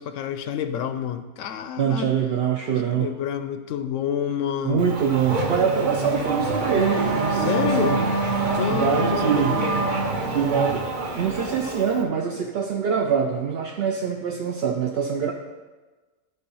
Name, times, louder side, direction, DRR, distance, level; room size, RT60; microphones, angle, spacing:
voice 1, 0.0-2.1 2.7-5.0 7.3-8.0 8.6-9.9, left 8 dB, 70° left, 10 dB, 0.9 m, -28 dB
voice 2, 1.8-3.1 4.6-8.1 8.7-9.5 10.3-10.9 11.2-15.3, right 7 dB, 60° right, 2 dB, 0.7 m, -24 dB
Race car auto racing / Accelerating revving vroom, 4.8-12.0, right 3 dB, 40° right, 0.9 m, -25 dB
11.5 x 4.0 x 5.4 m, 1.3 s
omnidirectional pair, 1.5 m